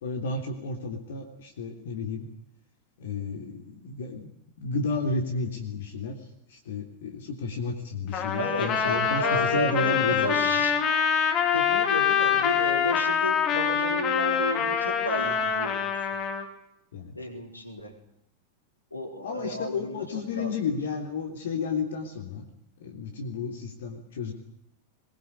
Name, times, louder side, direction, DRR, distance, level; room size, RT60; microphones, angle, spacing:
voice 1, 0.0-2.3 3.0-4.3 4.6-10.4 16.9-17.2 19.2-22.5 22.8-24.3, left 4 dB, 60° left, 3 dB, 3.4 m, -32 dB
Trumpet, 8.1-16.4, left 7 dB, 35° left, 3.9 m, -25 dB
voice 2, 8.4-10.8 11.5-16.2 17.1-18.0 18.9-20.5, equal, 85° left, 4 dB, 4.5 m, -33 dB
22.0 x 22.0 x 8.2 m, 0.78 s
figure-of-eight pair, 90°, 0 cm